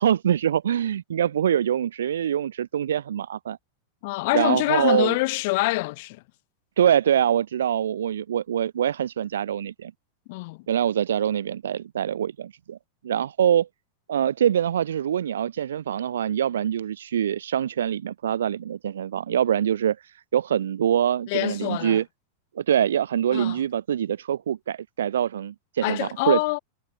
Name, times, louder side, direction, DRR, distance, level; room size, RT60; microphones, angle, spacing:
voice 1, 0.0-3.6 4.3-5.2 6.8-9.9 10.7-12.8 13.0-13.7 14.1-22.0 22.5-26.4, right 9 dB, 65° right, 1.6 m, -24 dB
voice 2, 4.0-6.2 10.3-10.6 21.3-22.0 23.3-23.6 25.8-26.6, left 24 dB, 50° left, 1.1 m, -25 dB
figure-of-eight pair, 90°, 0 cm